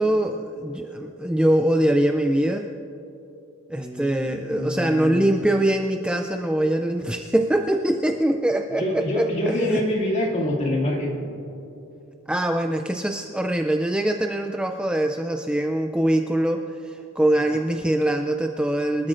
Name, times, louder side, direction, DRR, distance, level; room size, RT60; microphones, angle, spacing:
voice 1, 0.0-2.7 3.7-9.8 12.3-19.1, right 1 dB, 5° right, 4 dB, 0.3 m, -23 dB
voice 2, 3.7-5.6 8.8-11.3 17.5-17.6, left 1 dB, 35° left, -2 dB, 2.4 m, -26 dB
25.5 x 13.0 x 2.5 m, 3.0 s
head